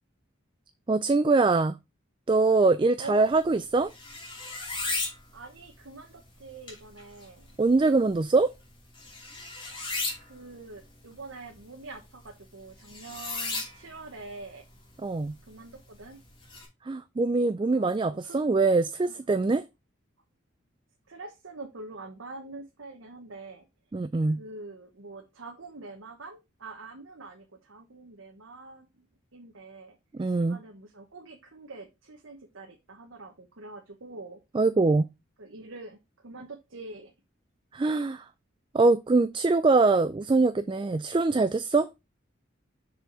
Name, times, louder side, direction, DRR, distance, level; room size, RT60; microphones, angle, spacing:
voice 1, 0.9-1.8 2.3-3.9 7.6-8.5 15.0-15.3 16.8-19.6 23.9-24.4 30.1-30.6 34.5-35.1 37.7-38.3 38.7-41.9, right 3 dB, 25° right, 0.3 m, -23 dB
voice 2, 3.0-3.3 5.3-7.5 10.2-14.6 15.5-16.2 17.7-18.4 19.0-19.1 21.1-23.6 24.2-29.1 29.3-34.4 35.4-37.1, right 3 dB, 80° right, 1.1 m, -45 dB
sound 1, 3.2-16.6, left 3 dB, 25° left, 2.7 m, -39 dB
6.5 x 5.0 x 4.7 m
head